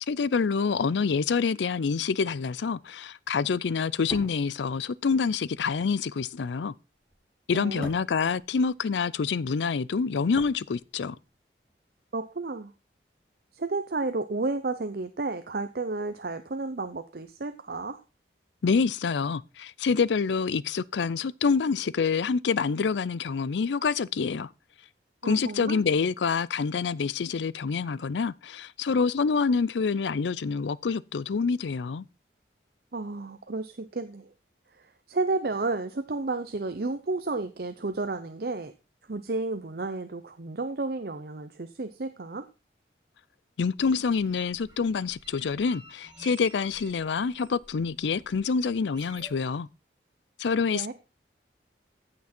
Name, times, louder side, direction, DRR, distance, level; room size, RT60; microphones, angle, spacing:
voice 1, 0.1-6.7 7.5-11.2 18.6-24.5 25.2-32.0 43.6-49.7 50.4-50.9, left 5 dB, 80° left, 0.4 m, -27 dB
sound 1, 3.9-9.2 9.5-11.3 11.6-11.8, equal, 5° left, 2.8 m, -46 dB
voice 2, 7.5-7.9 12.1-12.7 13.5-18.0 25.2-25.8 32.9-34.3 34.7-38.7 39.1-42.5 50.7-50.9, right 3 dB, 60° right, 0.7 m, -32 dB
sound 2, 43.8-49.3, right 2 dB, 25° right, 2.6 m, -52 dB
15.0 x 6.0 x 4.4 m
head